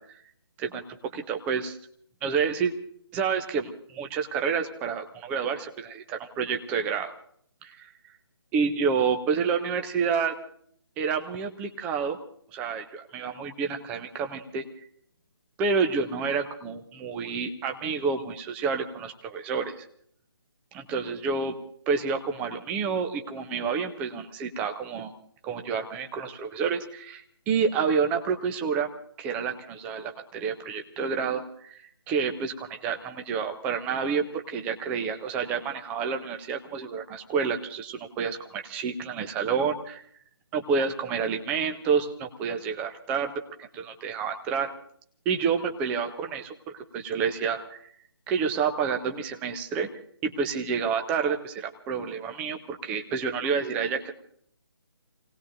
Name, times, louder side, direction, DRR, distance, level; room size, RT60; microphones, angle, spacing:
voice 1, 1.1-1.8 2.2-2.7 3.1-7.1 7.6-7.9 8.5-10.3 11.0-12.2 12.5-14.6 15.6-19.8 20.7-21.5 21.9-25.1 25.4-28.9 29.2-40.0 40.5-43.3 43.6-44.7 45.3-46.5 46.9-47.8 48.3-49.9 50.2-54.1, right 6 dB, 10° right, 5 dB, 0.7 m, -29 dB
28.5 x 18.5 x 2.6 m, 0.62 s
figure-of-eight pair, 145°, 14 cm